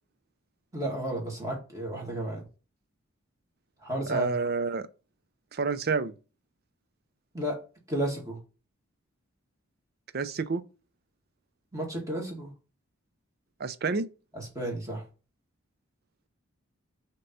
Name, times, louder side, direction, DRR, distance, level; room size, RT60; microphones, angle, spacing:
voice 1, 0.7-2.4 3.8-4.3 7.3-7.6 7.9-8.4 11.7-12.5 14.6-15.0, right 1 dB, 15° right, 1.9 m, -32 dB
voice 2, 4.1-4.9 5.5-6.1 10.1-10.6 13.6-14.1, right 4 dB, 45° right, 0.5 m, -29 dB
6.7 x 2.9 x 5.3 m
head